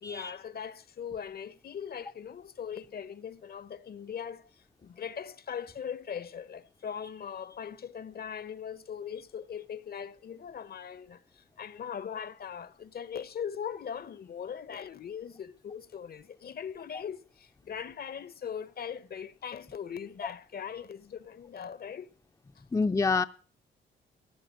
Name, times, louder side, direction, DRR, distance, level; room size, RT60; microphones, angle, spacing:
voice 1, 0.0-4.5 4.8-22.1, left 8 dB, 50° left, 0.9 m, -40 dB
voice 2, 22.7-23.3, left 4 dB, 15° left, 0.6 m, -27 dB
16.0 x 6.7 x 9.6 m
cardioid pair, 75°, 20 cm